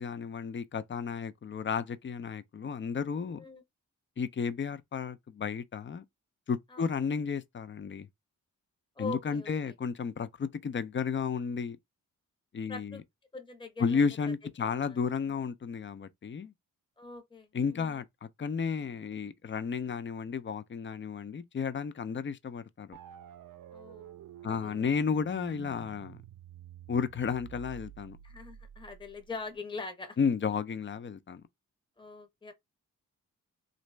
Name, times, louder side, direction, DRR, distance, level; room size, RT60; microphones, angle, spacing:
voice 1, 0.0-3.4 4.2-6.0 6.5-8.1 9.0-11.8 12.5-13.0 13.8-16.5 17.5-23.0 24.4-26.2 26.9-28.2 30.2-31.4, left 6 dB, 35° left, 0.5 m, -33 dB
voice 2, 9.0-9.7 12.7-13.0 13.3-14.1 14.6-15.0 17.0-18.0 23.7-24.2 24.4-24.8 28.2-30.2 32.0-32.5, left 3 dB, 15° left, 0.8 m, -43 dB
sound 1, 22.9-29.6, right 10 dB, 65° right, 0.5 m, -50 dB
2.9 x 2.6 x 3.2 m
cardioid pair, 55°, 34 cm